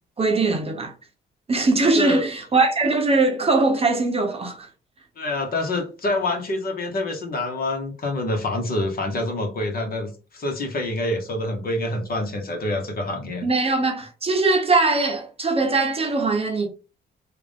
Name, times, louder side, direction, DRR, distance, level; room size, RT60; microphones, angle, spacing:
voice 1, 0.2-0.9 1.5-4.7 13.4-16.7, right 3 dB, 30° right, 0.9 m, -21 dB
voice 2, 1.9-2.2 5.2-13.5, left 2 dB, 50° left, 1.4 m, -26 dB
3.5 x 2.5 x 3.5 m
cardioid pair, 90°, 20 cm